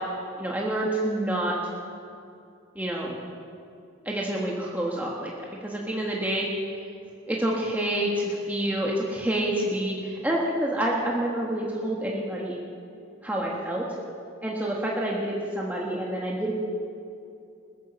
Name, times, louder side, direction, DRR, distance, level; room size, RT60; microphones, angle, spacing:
voice 1, 0.4-1.6 2.7-3.2 4.0-5.3 5.6-6.5 7.3-12.6 13.2-13.9 14.4-16.5, right 1 dB, 10° right, -3 dB, 1.4 m, -28 dB
21.0 x 8.4 x 6.9 m, 2.6 s
head